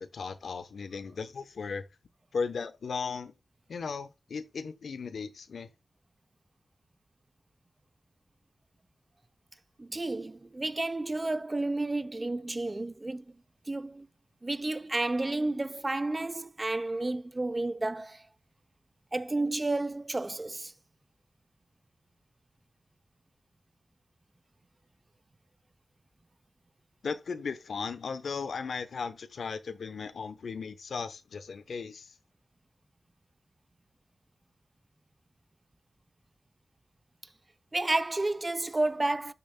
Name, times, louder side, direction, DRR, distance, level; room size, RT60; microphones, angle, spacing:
voice 1, 0.0-1.8 2.3-3.3 3.7-5.7 27.0-32.1, left 5 dB, 85° left, 0.8 m, -36 dB
voice 2, 9.8-13.4 13.7-14.1 14.4-18.3 19.1-20.7 37.7-39.3, right 2 dB, 25° right, 0.6 m, -31 dB
12.5 x 7.0 x 2.2 m
wide cardioid pair, 100°, 0 cm